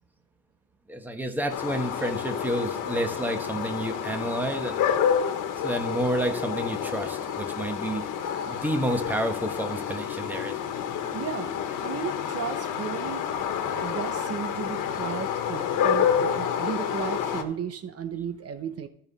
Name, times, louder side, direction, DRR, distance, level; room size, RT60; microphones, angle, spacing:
voice 1, 0.9-4.9 5.6-8.0 8.4-10.6, right 1 dB, 5° right, 5 dB, 1.1 m, -30 dB
sound 1, 1.5-17.4, left 8 dB, 85° left, 1.3 m, -29 dB
voice 2, 11.1-11.5 11.8-13.3 13.6-18.9, right 7 dB, 50° right, 9 dB, 0.9 m, -34 dB
15.0 x 5.5 x 4.0 m, 0.71 s
cardioid pair, 130°, 31 cm